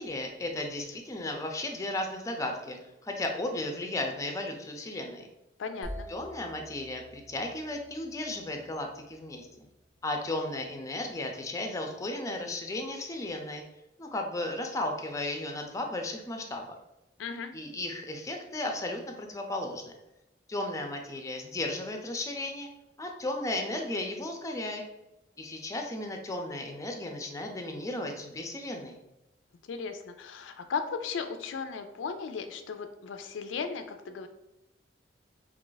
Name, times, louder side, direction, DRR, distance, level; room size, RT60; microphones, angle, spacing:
voice 1, 0.0-2.8 3.0-5.3 6.1-9.7 10.0-13.6 14.0-16.7 17.5-19.9 20.5-22.7 23.0-24.8 25.4-29.0, left 1 dB, 15° left, 3 dB, 0.4 m, -35 dB
voice 2, 5.6-6.1 17.2-17.5 29.7-34.3, left 5 dB, 85° left, 7 dB, 0.4 m, -36 dB
sound 1, 5.8-9.6, equal, 55° right, 0.8 m, -46 dB
2.9 x 2.4 x 3.8 m, 0.91 s
head